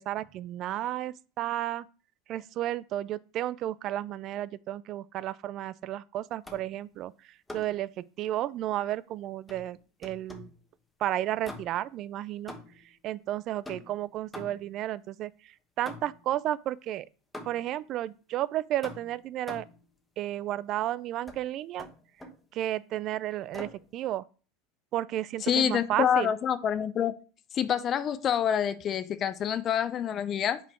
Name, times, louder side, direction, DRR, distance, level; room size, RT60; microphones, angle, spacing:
voice 1, 0.0-1.9 2.3-7.1 7.5-10.5 11.0-12.5 13.0-15.3 15.8-17.1 17.5-19.7 20.2-21.9 22.5-24.2 24.9-26.3, right 13 dB, 50° right, 0.3 m, -32 dB
sound 1, 6.4-6.8 7.5-7.9 9.5-10.6 11.4-12.0 12.5-12.9 13.6-14.8 15.9-16.3 17.3-17.8 18.8-19.8 21.3-21.4 21.8-22.4 23.5-23.9, left 2 dB, 10° left, 1.1 m, -45 dB
voice 2, 25.4-27.1 27.5-30.6, left 9 dB, 40° left, 0.5 m, -27 dB
5.6 x 4.3 x 4.3 m
hypercardioid pair, 100°, 0 cm